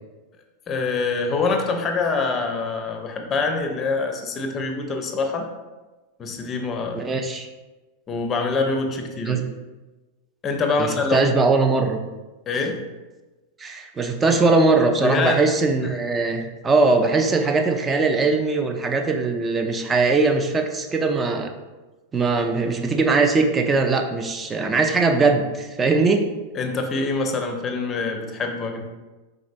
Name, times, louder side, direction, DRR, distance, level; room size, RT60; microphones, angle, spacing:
voice 1, 0.7-5.5 6.2-7.1 8.1-9.4 10.4-11.3 12.5-12.8 15.0-15.4 15.8-15.9 26.5-28.8, left 3 dB, 25° left, 4 dB, 0.6 m, -25 dB
voice 2, 6.9-7.5 9.3-9.4 10.8-12.0 13.6-21.5 22.1-26.2, right 3 dB, 20° right, 5 dB, 0.4 m, -20 dB
5.0 x 3.7 x 2.5 m, 1.2 s
figure-of-eight pair, 90°, 0 cm